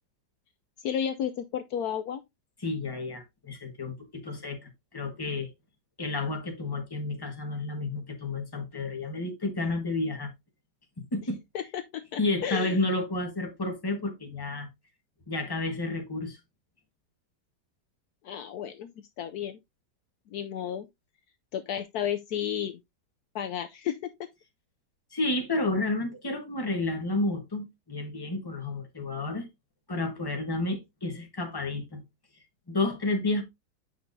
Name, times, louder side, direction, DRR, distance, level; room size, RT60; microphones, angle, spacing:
voice 1, 0.8-2.2 11.5-12.8 18.2-19.6 20.3-20.9 21.5-22.8 23.3-24.1, left 9 dB, 70° left, 1.0 m, -32 dB
voice 2, 2.6-5.5 6.0-10.3 11.1-11.4 12.2-14.7 15.3-16.4 25.1-29.5 29.9-32.0 32.7-33.4, left 2 dB, 15° left, 1.3 m, -31 dB
8.4 x 5.8 x 2.6 m
omnidirectional pair, 1.8 m